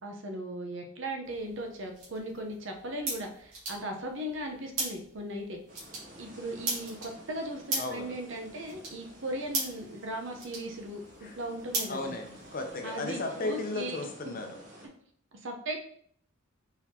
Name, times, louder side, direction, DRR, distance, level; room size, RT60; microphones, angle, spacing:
voice 1, 0.0-5.6 6.2-11.0 11.3-12.1 12.8-14.0 15.4-15.8, right 1 dB, 60° right, 2 dB, 0.8 m, -37 dB
sound 1, 1.2-12.7, right 2 dB, 90° right, 1.9 m, -40 dB
sound 2, 5.7-14.9, equal, 40° right, 1.1 m, -52 dB
voice 2, 7.8-8.1 11.2-11.3 11.9-14.5, left 2 dB, 40° left, 4 dB, 0.7 m, -35 dB
4.5 x 4.1 x 2.8 m, 0.63 s
head